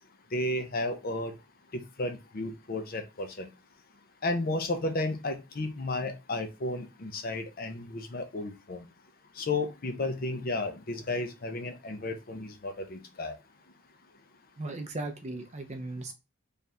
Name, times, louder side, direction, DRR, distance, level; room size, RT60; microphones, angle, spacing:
voice 1, 0.3-1.3 1.7-3.5 4.2-8.8 9.4-13.4, left 2 dB, 40° left, 7 dB, 0.6 m, -33 dB
voice 2, 14.6-16.1, right 2 dB, 30° right, 6 dB, 0.5 m, -37 dB
3.4 x 2.4 x 4.2 m, 0.25 s
head